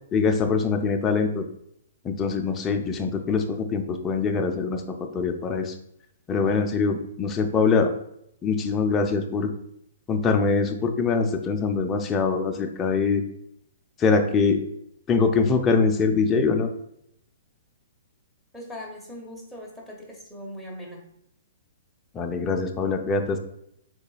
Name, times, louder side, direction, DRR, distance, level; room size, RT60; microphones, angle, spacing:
voice 1, 0.1-1.4 2.0-4.8 5.1-5.7 6.3-7.9 8.4-9.5 10.1-13.2 14.0-14.6 15.1-16.7 22.1-23.4, left 4 dB, 15° left, 4 dB, 0.4 m, -23 dB
voice 2, 18.5-21.0, left 1 dB, ahead, -2 dB, 0.9 m, -40 dB
5.3 x 4.1 x 2.3 m, 0.74 s
hypercardioid pair, 155°, 0 cm